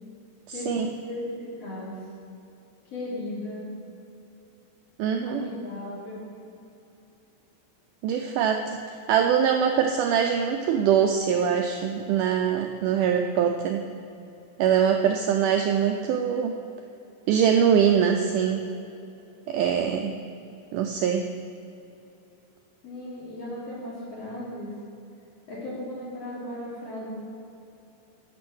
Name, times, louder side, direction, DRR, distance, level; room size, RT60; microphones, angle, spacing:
voice 1, 1.0-1.9 2.9-3.7 5.2-6.3 22.8-24.7 25.5-27.1, left 1 dB, 45° left, -8 dB, 4.0 m, -36 dB
voice 2, 5.0-5.4 8.0-13.8 14.6-16.5 17.3-18.7 19.5-20.2 20.7-21.3, right 8 dB, 90° right, 4 dB, 1.8 m, -23 dB
13.0 x 6.7 x 6.2 m, 2.8 s
omnidirectional pair, 4.3 m